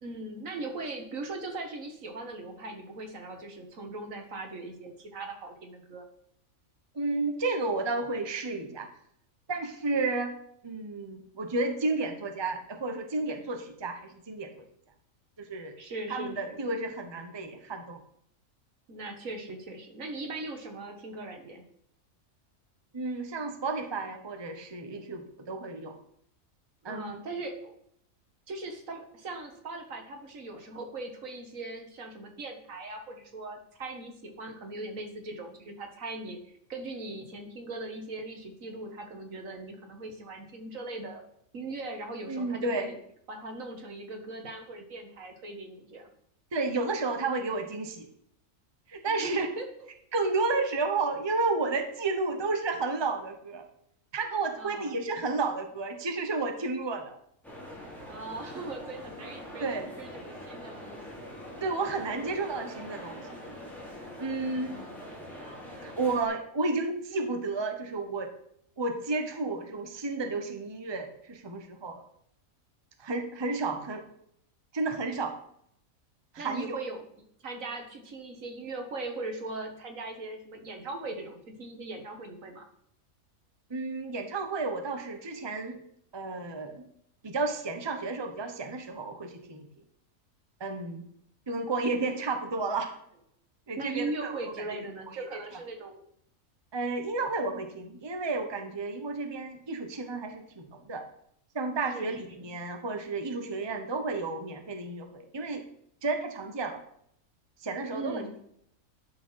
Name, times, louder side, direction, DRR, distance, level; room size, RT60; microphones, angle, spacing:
voice 1, 0.0-6.0 15.8-16.6 18.9-21.6 26.8-27.7 28.5-41.2 41.5-43.0 43.3-46.1 49.0-49.9 54.6-55.0 58.1-59.7 60.0-61.0 64.7-64.9 76.4-82.7 93.8-96.0 101.8-102.5 107.9-108.4, right 2 dB, 65° right, 4 dB, 1.9 m, -39 dB
voice 2, 6.9-8.9 9.5-10.3 10.6-14.6 15.4-15.7 16.1-18.0 22.9-26.0 26.8-27.2 42.3-42.9 46.5-48.1 48.9-49.5 50.1-53.7 54.1-57.2 59.6-59.9 61.6-63.4 64.2-64.8 65.8-68.3 68.8-72.0 73.0-74.0 74.7-75.4 76.3-76.8 83.7-85.8 86.1-86.9 87.2-89.7 90.6-91.0 91.5-92.9 93.7-94.5 96.7-101.0 101.5-105.6 106.0-106.8 107.6-108.3, right 3 dB, 20° right, 5 dB, 1.0 m, -32 dB
sound 1, 57.4-66.2, equal, ahead, 3.2 m, -43 dB
11.0 x 6.1 x 5.7 m, 0.70 s
omnidirectional pair, 1.5 m